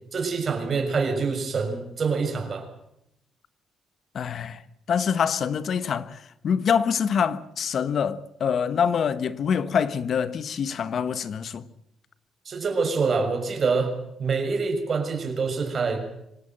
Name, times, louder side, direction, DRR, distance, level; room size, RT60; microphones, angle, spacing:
voice 1, 0.1-2.7 12.5-13.9 14.2-16.0, right 4 dB, 45° right, 6.3 m, -25 dB
voice 2, 4.1-4.6 4.9-11.6, left 7 dB, 60° left, 1.3 m, -25 dB
25.0 x 18.0 x 7.9 m
cardioid pair, 90°, 0 cm